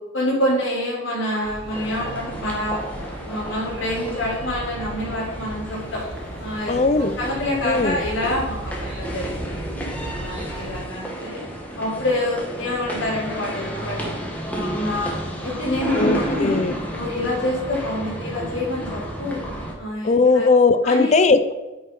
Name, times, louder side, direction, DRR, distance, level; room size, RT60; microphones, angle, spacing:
voice 1, 0.1-2.8 3.2-6.0 6.4-9.7 10.1-11.4 11.8-14.2 14.5-15.1 15.4-16.6 16.9-19.4 19.8-20.5 20.8-21.1, left 1 dB, 80° left, -6 dB, 3.3 m, -27 dB
sound 1, 1.4-10.8, right 1 dB, 90° right, 1.4 m, -36 dB
sound 2, 1.7-19.7, right 1 dB, 10° left, 1.6 m, -32 dB
voice 2, 6.7-7.2 7.6-8.0 16.0-16.7 20.0-21.5, left 3 dB, 35° left, 11 dB, 0.5 m, -18 dB
9.5 x 5.5 x 5.4 m, 1.1 s
head